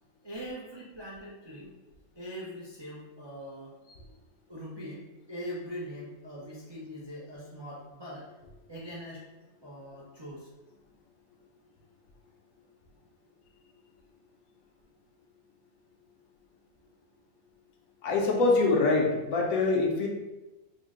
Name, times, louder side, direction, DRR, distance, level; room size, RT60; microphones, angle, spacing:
voice 1, 0.2-1.7 2.2-3.8 4.5-8.3 8.7-9.2 9.6-10.5, equal, 40° right, -7 dB, 0.3 m, -42 dB
voice 2, 18.0-20.1, left 3 dB, 70° left, 0 dB, 1.0 m, -24 dB
3.7 x 2.1 x 3.6 m, 1.1 s
omnidirectional pair, 1.5 m